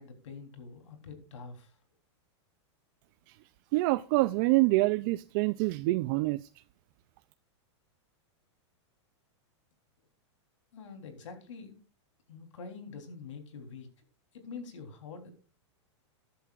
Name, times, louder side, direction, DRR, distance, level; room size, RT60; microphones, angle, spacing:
voice 1, 0.0-1.8 10.7-11.8 12.3-13.9 14.3-15.3, left 5 dB, 85° left, 3.6 m, -45 dB
voice 2, 3.7-6.5, right 20 dB, 45° right, 0.4 m, -26 dB
13.5 x 11.5 x 2.5 m
supercardioid pair, 145°, 15 cm